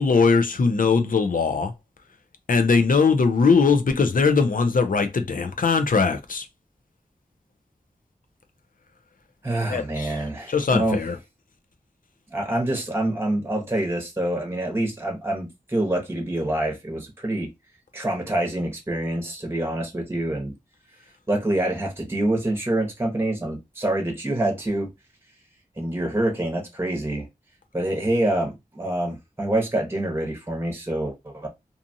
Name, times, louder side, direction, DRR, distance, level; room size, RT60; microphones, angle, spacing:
voice 1, 0.0-1.7 2.5-6.5 9.7-10.2 10.5-11.2, left 4 dB, 65° left, 0.5 m, -20 dB
voice 2, 9.4-11.0 12.3-17.5 17.9-20.5 21.3-24.9 25.8-27.3 27.7-31.5, right 1 dB, 15° right, 1.0 m, -26 dB
2.6 x 2.4 x 2.7 m
wide cardioid pair, 60°, 15 cm